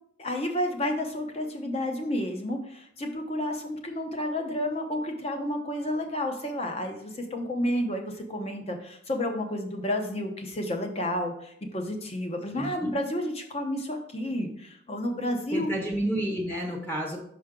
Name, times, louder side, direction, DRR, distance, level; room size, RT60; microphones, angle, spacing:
voice 1, 0.2-15.7, left 1 dB, 30° left, 4 dB, 0.8 m, -31 dB
voice 2, 12.5-12.9 15.5-17.2, equal, 10° left, 0 dB, 0.9 m, -30 dB
5.6 x 5.1 x 3.7 m, 0.69 s
head